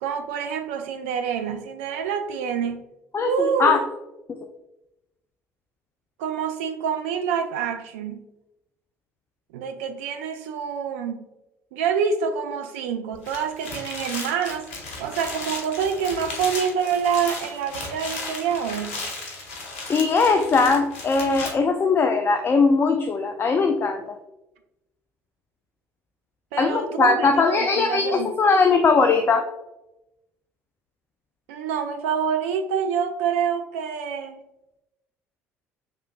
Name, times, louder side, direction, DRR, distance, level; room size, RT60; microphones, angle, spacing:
voice 1, 0.0-2.8 3.2-3.8 6.2-8.2 9.5-11.2 11.7-14.7 15.0-19.0 26.5-28.3 31.5-34.4, right 7 dB, 70° right, 6 dB, 0.3 m, -26 dB
voice 2, 3.1-3.8 19.9-24.0 26.6-29.4, left 4 dB, 30° left, 6 dB, 0.4 m, -20 dB
sound 1, 13.1-21.5, left 3 dB, 75° left, 0.9 m, -35 dB
6.5 x 3.3 x 2.2 m, 0.93 s
figure-of-eight pair, 55°, 7 cm